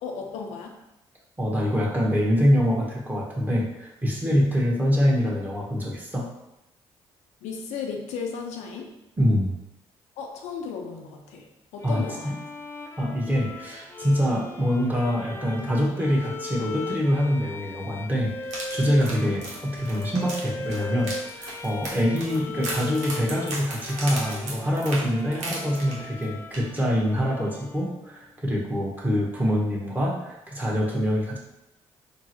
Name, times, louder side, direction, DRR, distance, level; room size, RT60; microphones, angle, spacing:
voice 1, 0.0-0.8 7.4-8.9 10.2-12.3, left 5 dB, 85° left, 2 dB, 0.4 m, -35 dB
voice 2, 1.4-6.3 9.2-9.5 11.8-12.3 13.0-31.4, equal, 15° right, -4 dB, 1.0 m, -25 dB
Bowed string instrument, 11.8-28.3, left 3 dB, 20° left, 0.4 m, -38 dB
sound 1, 18.4-26.2 26.5-26.8 27.1-27.2, right 2 dB, 80° right, 0.8 m, -36 dB
3.6 x 2.0 x 2.9 m, 0.91 s
supercardioid pair, 60°, 12 cm